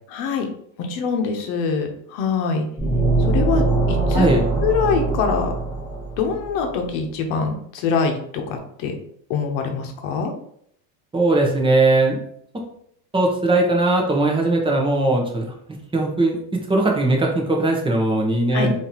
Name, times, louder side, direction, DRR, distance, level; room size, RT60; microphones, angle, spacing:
voice 1, 0.1-0.5 0.8-2.7 3.3-4.3 4.6-5.5 6.2-8.9 9.3-10.3 18.5-18.7, left 5 dB, 65° left, 4 dB, 0.9 m, -24 dB
sound 1, 2.8-6.5, right 3 dB, 5° left, 1.3 m, -22 dB
voice 2, 4.1-4.4 11.1-12.2 13.1-15.5 15.9-18.7, right 2 dB, 10° right, 0 dB, 0.7 m, -19 dB
3.8 x 2.7 x 2.9 m, 0.68 s
supercardioid pair, 110°, 50 cm